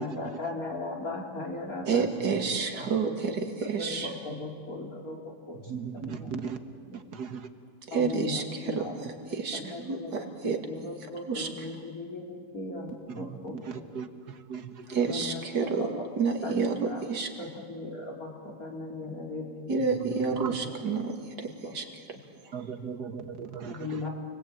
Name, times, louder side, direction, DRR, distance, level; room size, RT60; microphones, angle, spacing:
voice 1, 0.0-2.0 3.0-3.4 3.6-5.2 5.5-5.6 6.0-6.3 7.9-8.9 9.3-13.8 15.1-15.9 16.4-17.0 17.4-19.7 20.4-20.5 21.6-21.7 23.7-24.1, left 2 dB, 55° left, 0 dB, 3.8 m, -38 dB
voice 2, 1.9-4.2 6.8-7.1 7.9-10.6 11.1-11.7 14.9-17.3 19.7-22.0 22.4-22.7, right 5 dB, 85° right, 4 dB, 2.9 m, -30 dB
voice 3, 5.7-6.6 7.1-7.4 13.1-13.4 13.7-14.1 14.5-14.9 20.4-20.5 22.5-24.1, right 6 dB, 70° right, 8 dB, 1.9 m, -37 dB
29.0 x 20.5 x 9.0 m, 2.1 s
omnidirectional pair, 1.8 m